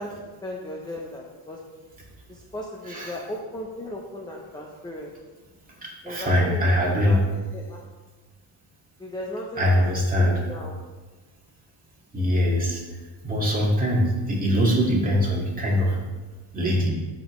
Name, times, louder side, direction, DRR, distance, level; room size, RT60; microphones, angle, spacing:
voice 1, 0.0-1.6 2.3-5.1 6.0-7.8 9.0-9.6 10.2-10.8, left 1 dB, 10° left, 0 dB, 0.7 m, -36 dB
voice 2, 2.9-3.2 5.8-7.2 9.6-10.5 12.1-13.0 13.2-16.0 16.5-16.9, equal, 15° right, -4 dB, 2.1 m, -22 dB
13.5 x 5.3 x 3.1 m, 1.2 s
cardioid pair, 140°, 47 cm